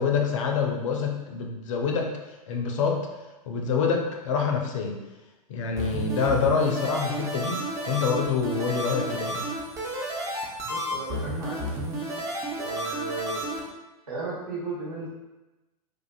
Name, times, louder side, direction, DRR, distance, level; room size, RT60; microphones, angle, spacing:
voice 1, 0.0-2.1 2.5-3.1 3.5-5.0 5.5-9.4, left 5 dB, 55° left, 2 dB, 0.4 m, -26 dB
sound 1, 5.8-13.6, right 1 dB, 15° right, 0.4 m, -32 dB
voice 2, 10.6-11.7 12.6-13.4 14.1-15.1, right 3 dB, 70° right, -7 dB, 1.1 m, -35 dB
2.4 x 2.3 x 2.3 m, 1.1 s
figure-of-eight pair, 95°, 20 cm